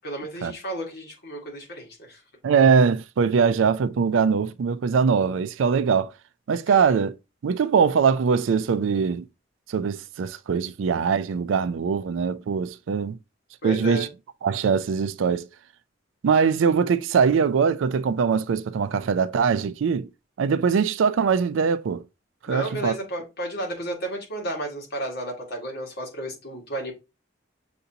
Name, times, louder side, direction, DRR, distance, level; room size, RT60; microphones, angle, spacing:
voice 1, 0.0-2.2 6.7-6.9 13.6-14.1 22.5-26.9, right 1 dB, 55° left, 1.7 m, -32 dB
voice 2, 2.4-6.1 6.5-7.2 7.4-9.2 9.7-13.2 13.6-14.1 14.4-15.5 16.2-20.1 20.4-22.0 22.4-23.0, right 6 dB, 75° right, 0.4 m, -22 dB
6.7 x 2.6 x 2.7 m
head